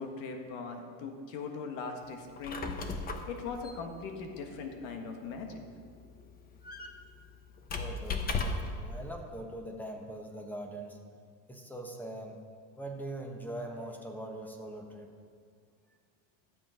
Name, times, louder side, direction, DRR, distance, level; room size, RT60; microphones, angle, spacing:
voice 1, 0.0-5.6, left 4 dB, 80° left, 4 dB, 1.6 m, -40 dB
Squeak, 2.2-8.8, left 3 dB, 25° left, 0.8 m, -38 dB
voice 2, 7.8-8.3 8.7-11.0 11.5-12.4 12.8-15.1, right 1 dB, 5° left, 2 dB, 1.1 m, -41 dB
12.0 x 7.7 x 5.1 m, 2.1 s
cardioid pair, 145°, 36 cm